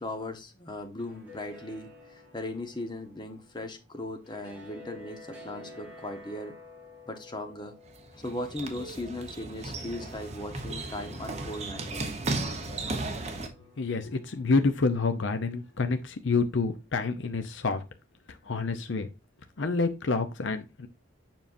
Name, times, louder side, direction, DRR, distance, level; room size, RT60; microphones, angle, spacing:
voice 1, 0.0-6.6 7.0-7.7 8.1-12.2, left 1 dB, 20° left, 1.0 m, -38 dB
sound 1, 0.8-16.0, left 3 dB, 5° right, 2.3 m, -52 dB
sound 2, 7.9-13.5, right 2 dB, 30° right, 1.0 m, -35 dB
voice 2, 13.8-17.8 18.3-19.1 19.6-20.9, left 4 dB, 65° left, 0.6 m, -28 dB
7.2 x 5.6 x 2.6 m
head